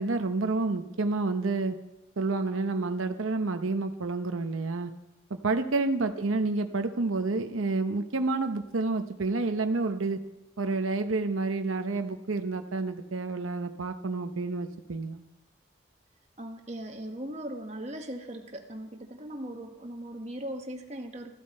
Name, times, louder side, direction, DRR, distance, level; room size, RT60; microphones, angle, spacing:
voice 1, 0.0-1.8 2.2-4.9 5.3-10.2 10.6-15.2, right 3 dB, 90° right, 7 dB, 0.9 m, -29 dB
voice 2, 16.4-21.3, right 1 dB, 35° right, 3 dB, 1.4 m, -39 dB
14.5 x 13.0 x 4.3 m, 0.91 s
head